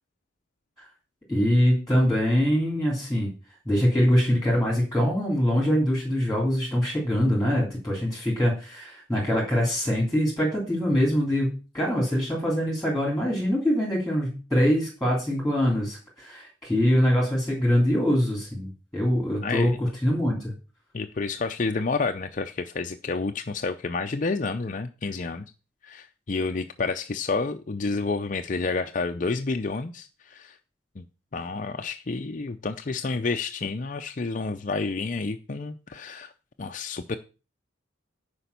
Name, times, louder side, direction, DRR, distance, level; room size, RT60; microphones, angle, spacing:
voice 1, 1.3-3.3 3.6-20.5, equal, ahead, -3 dB, 3.3 m, -24 dB
voice 2, 19.4-19.8 20.9-25.4 25.8-30.6 31.0-31.1 31.3-36.3 36.6-37.2, left 3 dB, 40° left, 7 dB, 0.5 m, -29 dB
10.0 x 5.2 x 6.8 m, 0.34 s
head